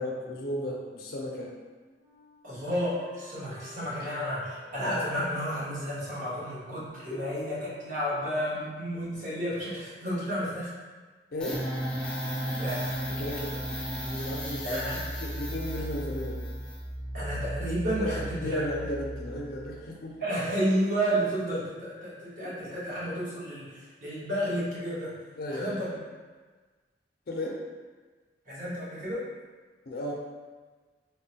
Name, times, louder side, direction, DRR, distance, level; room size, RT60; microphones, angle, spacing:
voice 1, 0.0-1.5 4.0-4.1 7.1-7.6 11.3-11.6 13.1-13.7 14.0-14.9 15.2-16.4 18.0-20.2 22.4-22.5 25.4-25.9 27.3-27.6 29.9-30.1, left 1 dB, 60° left, -2 dB, 0.5 m, -35 dB
Wind instrument woodwind instrument, 1.5-9.0, equal, 20° right, 0.9 m, -53 dB
voice 2, 2.4-10.7 12.4-13.0 14.6-15.0 17.1-18.7 20.2-25.1 25.5-25.9 28.5-29.2, equal, 50° right, -9 dB, 1.1 m, -31 dB
sound 1, 11.4-19.8, equal, 5° left, 0.4 m, -35 dB
3.6 x 2.1 x 2.7 m, 1.4 s
head